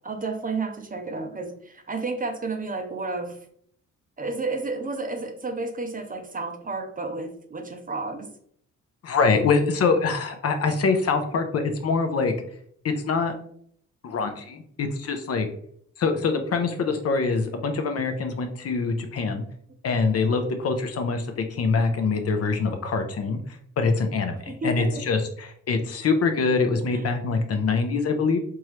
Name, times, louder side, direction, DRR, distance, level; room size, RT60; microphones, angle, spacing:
voice 1, 0.0-3.4 4.2-8.3 24.4-25.0 26.9-27.0, right 3 dB, 25° right, 5 dB, 0.6 m, -31 dB
voice 2, 9.0-12.3 12.8-13.3 14.0-15.5 16.0-19.4 19.8-28.4, left 4 dB, 50° left, 6 dB, 0.6 m, -24 dB
3.5 x 3.0 x 3.1 m, 0.64 s
cardioid pair, 95°, 32 cm